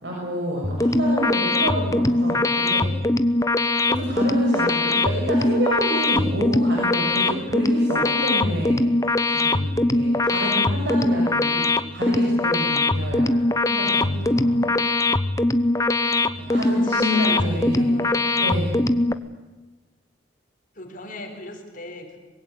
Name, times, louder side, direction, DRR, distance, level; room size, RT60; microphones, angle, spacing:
voice 1, 0.0-3.0 3.9-8.8 9.3-13.4 13.7-14.7 16.3-18.0 18.4-18.9, equal, 60° right, -3 dB, 6.7 m, -28 dB
sound 1, 0.6-19.1, left 2 dB, 15° left, 0.8 m, -21 dB
voice 2, 16.5-18.3 20.7-22.2, left 1 dB, 40° left, 4 dB, 4.1 m, -38 dB
24.5 x 22.5 x 8.4 m, 1.2 s
head